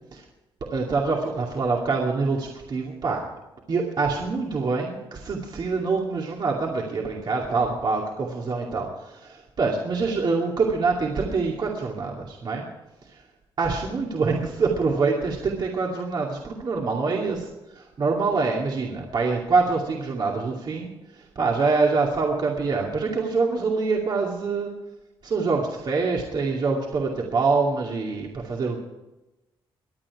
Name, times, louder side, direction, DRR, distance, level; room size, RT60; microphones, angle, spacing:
voice 1, 0.7-3.2 3.7-12.6 13.1-13.2 13.6-17.5 17.7-20.9 21.2-24.7 25.2-28.8, right 4 dB, 50° right, -1 dB, 2.4 m, -25 dB
23.5 x 9.2 x 4.8 m, 1.0 s
cardioid pair, 100°, 10 cm